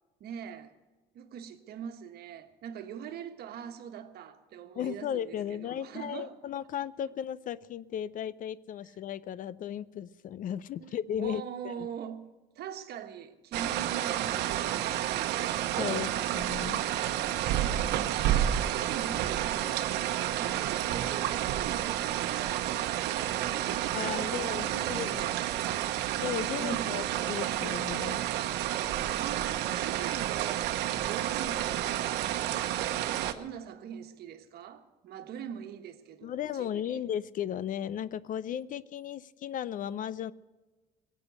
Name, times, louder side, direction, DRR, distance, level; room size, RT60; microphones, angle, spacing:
voice 1, 0.2-0.7 1.1-6.4 10.8-12.2 12.5-15.4 16.0-16.4 17.4-20.0 20.3-25.5 26.6-26.9 29.2-30.8 31.1-31.9 33.3-37.0, right 8 dB, 70° right, 1.4 m, -42 dB
voice 2, 4.8-11.9 15.8-16.8 23.9-25.3 26.2-28.2 36.2-40.3, left 10 dB, 55° left, 0.5 m, -35 dB
sound 1, 13.5-33.3, right 12 dB, 85° right, 1.0 m, -30 dB
17.5 x 8.4 x 8.2 m
cardioid pair, 110°, 17 cm